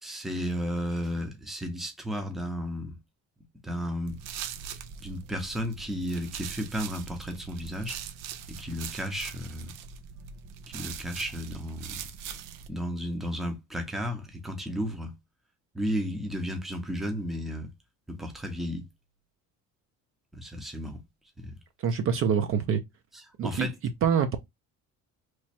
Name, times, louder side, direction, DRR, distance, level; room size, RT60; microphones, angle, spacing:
voice 1, 0.0-3.0 3.6-4.2 5.0-8.0 8.5-9.7 10.7-12.0 12.7-15.2 15.7-17.7 18.1-18.9 20.3-21.0 21.4-21.5 23.1-23.7, equal, ahead, 0.6 m, -33 dB
sound 1, 4.1-12.7, right 8 dB, 90° right, 0.6 m, -41 dB
voice 2, 21.8-22.8 23.4-23.7 24.0-24.4, right 7 dB, 45° right, 0.5 m, -25 dB
3.1 x 2.2 x 4.2 m
cardioid pair, 160°, 31 cm